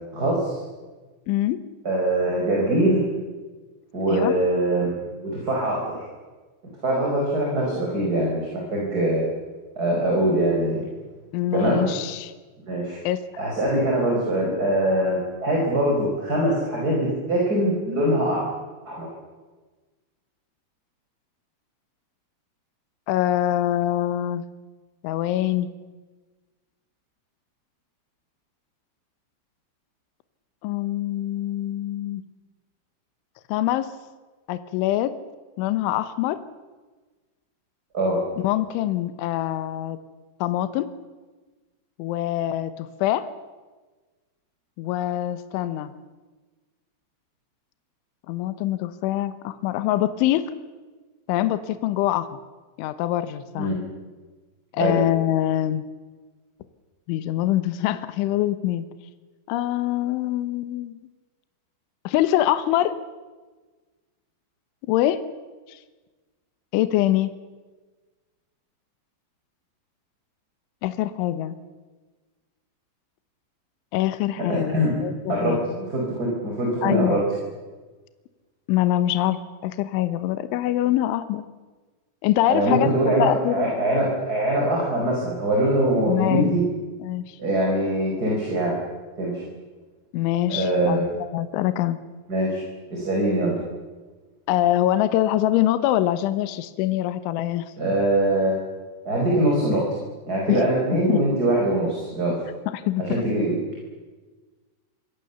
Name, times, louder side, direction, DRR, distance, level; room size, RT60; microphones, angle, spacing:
voice 1, 0.1-0.6 1.8-3.0 3.9-6.1 6.8-9.2 9.7-10.8 11.5-11.9 12.7-13.0 13.4-18.4 18.8-19.1 37.9-38.2 53.6-53.8 54.8-55.0 74.5-74.9 75.3-77.2 82.5-86.6 87.4-88.8 89.2-89.4 90.5-91.1 92.3-92.6 92.9-93.5 97.8-98.6 99.0-99.9 100.3-102.4 103.0-103.5, right 1 dB, 20° right, -2 dB, 5.1 m, -23 dB
voice 2, 1.3-1.6 4.1-4.3 11.3-12.3 13.0-13.2 23.1-24.4 25.0-25.7 30.6-32.2 33.5-33.9 34.5-35.1 35.6-36.4 38.4-40.0 40.4-40.9 42.0-43.3 44.8-45.9 48.3-50.5 51.3-52.3 52.8-53.7 54.7-55.9 57.1-58.9 59.5-61.0 62.0-62.9 64.9-65.2 66.7-67.3 70.8-71.6 73.9-75.6 76.8-77.2 78.7-81.4 82.2-83.9 86.1-86.5 87.0-87.4 90.1-92.0 94.5-97.7 100.5-100.7 101.1-101.2 102.7-103.2, left 13 dB, 75° left, 11 dB, 3.3 m, -24 dB
27.5 x 24.0 x 7.1 m, 1.3 s
omnidirectional pair, 5.9 m